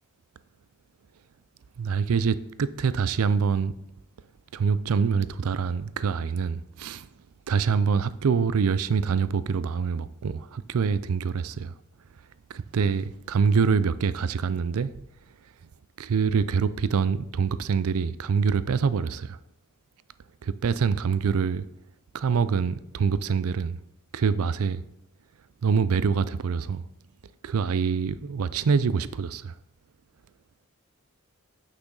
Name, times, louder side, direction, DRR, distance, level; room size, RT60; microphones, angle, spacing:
voice 1, 1.8-3.7 4.5-7.1 7.5-11.7 12.5-14.9 16.0-19.4 20.4-21.6 22.1-23.8 24.1-24.8 25.6-26.8 27.4-29.5, right 6 dB, 85° right, 0.4 m, -25 dB
8.8 x 5.9 x 4.0 m
head